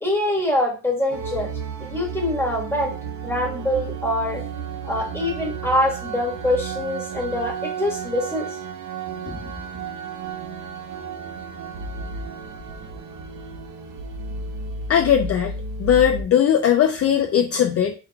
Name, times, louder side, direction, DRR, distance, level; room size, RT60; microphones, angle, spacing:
voice 1, 0.0-1.5 1.8-2.9 3.2-4.4 4.9-8.5 9.3-9.4, left 1 dB, 5° left, -2 dB, 1.4 m, -24 dB
sound 1, 1.1-16.2, right 5 dB, 65° right, 0.7 m, -33 dB
voice 2, 14.9-15.5 15.8-17.9, left 9 dB, 45° left, 4 dB, 0.4 m, -18 dB
4.6 x 3.6 x 2.2 m, 0.33 s
cardioid pair, 95°, 33 cm